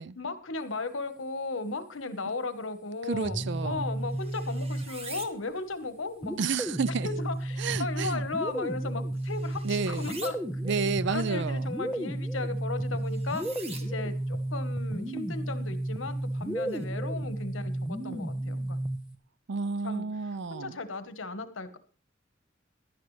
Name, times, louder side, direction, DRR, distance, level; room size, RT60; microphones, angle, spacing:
voice 1, 0.2-6.4 7.0-10.4 10.7-13.5 13.8-18.8 19.8-20.0 20.5-21.8, left 3 dB, 85° left, 1.3 m, -36 dB
sound 1, 3.1-5.3 6.2-19.2, right 1 dB, 5° right, 0.9 m, -33 dB
voice 2, 3.1-3.9 6.4-7.1 7.6-8.2 9.6-10.1 10.6-11.7 19.5-20.8, right 5 dB, 65° right, 0.5 m, -31 dB
sound 2, 3.4-16.8, right 4 dB, 30° right, 1.4 m, -50 dB
16.0 x 11.5 x 3.3 m
head